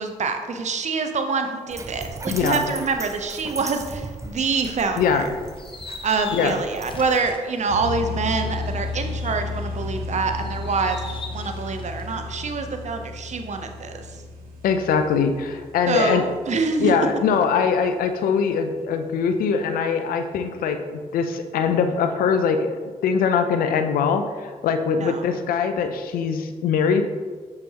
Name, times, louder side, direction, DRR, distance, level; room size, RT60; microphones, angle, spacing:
voice 1, 0.0-5.2 6.0-14.1 15.9-16.9 25.0-25.2, right 4 dB, 55° right, 6 dB, 0.8 m, -26 dB
Dog, 1.7-7.2, right 2 dB, 20° right, 0.7 m, -37 dB
voice 2, 2.3-2.7 5.0-5.3 6.3-6.6 14.6-16.2 16.8-27.0, left 6 dB, 80° left, 8 dB, 0.6 m, -22 dB
sound 1, 5.1-9.9 10.3-12.1, left 3 dB, 35° left, 0.9 m, -42 dB
sound 2, 7.7-17.2, left 3 dB, 85° right, 0.7 m, -33 dB
6.4 x 5.7 x 2.9 m, 1.5 s
supercardioid pair, 55°, 15 cm